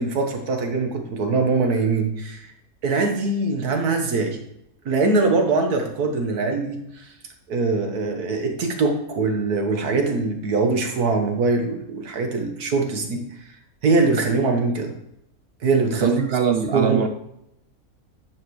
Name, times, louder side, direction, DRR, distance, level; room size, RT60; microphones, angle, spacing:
voice 1, 0.0-2.5 2.8-4.4 4.9-7.1 7.5-13.2 13.8-14.9 15.6-16.2 16.7-17.0, right 3 dB, 80° right, 4 dB, 1.8 m, -22 dB
voice 2, 16.0-17.1, right 7 dB, 65° right, 8 dB, 0.6 m, -21 dB
10.5 x 7.6 x 3.2 m, 0.78 s
omnidirectional pair, 1.6 m